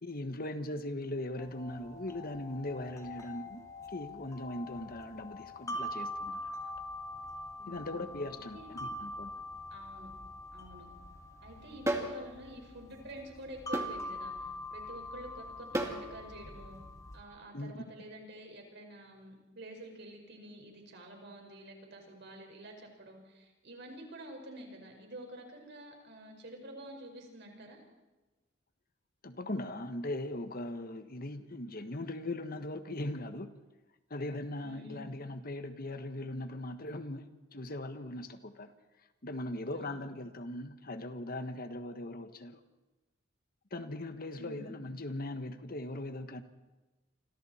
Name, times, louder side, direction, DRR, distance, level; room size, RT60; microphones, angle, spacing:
voice 1, 0.0-6.4 7.7-9.3 17.5-17.7 29.2-33.5 34.1-38.7 39.2-42.6 43.7-46.4, left 1 dB, 50° left, 9 dB, 1.4 m, -39 dB
sound 1, 1.4-17.2, left 1 dB, 20° left, 2.5 m, -44 dB
voice 2, 7.6-8.7 9.7-10.1 10.5-10.9 11.4-16.8 17.1-27.8 34.6-35.1 39.8-40.1 44.4-44.7, right 1 dB, 60° right, 2 dB, 5.3 m, -49 dB
sound 2, 11.9-12.2 13.7-13.9 15.7-16.0, right 1 dB, 15° right, 2.3 m, -31 dB
28.5 x 25.5 x 4.4 m, 1.1 s
head